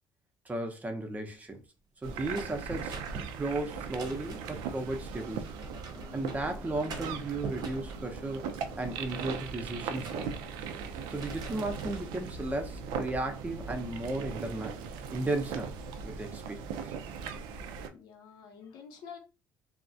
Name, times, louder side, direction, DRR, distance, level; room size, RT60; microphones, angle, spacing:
voice 1, 0.5-1.6 2.0-2.9 3.3-5.6 6.1-8.4 8.8-10.4 11.1-14.8 15.1-16.9, right 2 dB, 20° right, 0.6 m, -35 dB
sound 1, 2.0-17.9, right 6 dB, 85° right, 0.3 m, -39 dB
sound 2, 2.3-4.7 5.4-6.4 6.8-8.0 8.5-10.7 11.0-12.1 12.6-13.0, right 4 dB, 55° right, 0.7 m, -45 dB
sound 3, 6.0-14.1, left 4 dB, 35° left, 0.6 m, -55 dB
voice 2, 17.9-19.2, left 7 dB, 75° left, 0.7 m, -49 dB
2.3 x 2.0 x 2.6 m
supercardioid pair, 85°, 8 cm